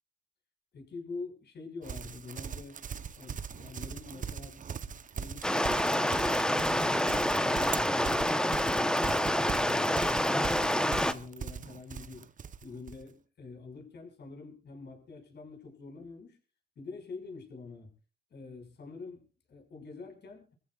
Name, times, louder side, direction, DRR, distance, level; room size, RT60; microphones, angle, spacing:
voice 1, 0.7-2.8 3.2-8.4 8.7-12.3 12.6-16.4 16.8-17.9 18.3-20.5, left 4 dB, 60° left, 3 dB, 5.9 m, -46 dB
Livestock farm animals working animals, 1.8-13.0, right 7 dB, 40° right, 0.9 m, -40 dB
Stream, 5.4-11.1, left 1 dB, 5° left, 1.0 m, -27 dB
26.5 x 14.5 x 2.4 m, 0.36 s
cardioid pair, 90°, 20 cm